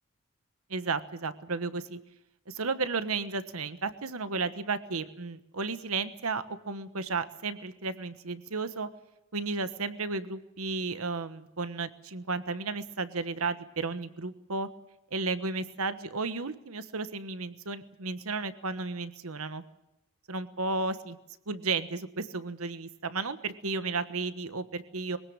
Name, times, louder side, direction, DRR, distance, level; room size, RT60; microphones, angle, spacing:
voice 1, 0.7-2.0 2.5-8.9 9.3-14.7 15.1-19.6 20.3-21.2 21.5-25.2, right 4 dB, 85° right, 12 dB, 1.3 m, -33 dB
23.0 x 17.0 x 8.8 m, 0.90 s
head